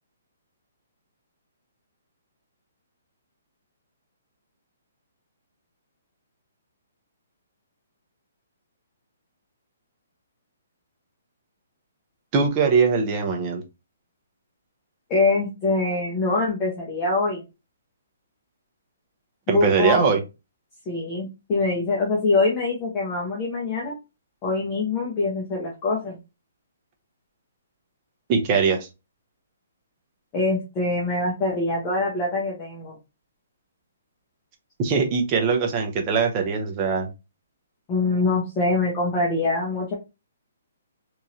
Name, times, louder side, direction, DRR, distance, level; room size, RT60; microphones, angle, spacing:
voice 1, 12.3-13.6 19.5-20.2 28.3-28.9 34.8-37.1, right 5 dB, 20° right, 3 dB, 0.6 m, -21 dB
voice 2, 15.1-17.4 19.5-20.1 20.9-23.9 24.4-26.2 30.3-33.0 37.9-39.9, left 3 dB, 15° left, -3 dB, 0.8 m, -24 dB
3.6 x 3.0 x 2.7 m, 0.26 s
hypercardioid pair, 175°, 0 cm